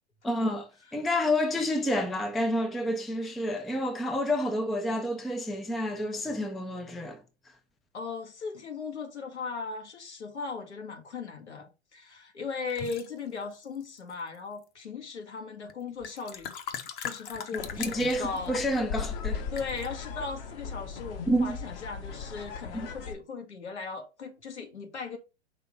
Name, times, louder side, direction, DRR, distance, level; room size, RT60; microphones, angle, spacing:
voice 1, 0.2-7.6 17.5-19.5 21.3-21.6 22.7-22.9, equal, ahead, 0.3 m, -29 dB
voice 2, 7.9-18.6 19.5-25.2, left 4 dB, 80° left, 2.1 m, -38 dB
sound 1, 12.7-13.1 13.8-14.4 15.7-15.8 16.0-18.5 19.6-19.9, left 8 dB, 30° left, 0.8 m, -39 dB
sound 2, 17.6-23.1, left 6 dB, 55° left, 1.4 m, -38 dB
5.5 x 3.4 x 5.6 m
hypercardioid pair, 110°, 34 cm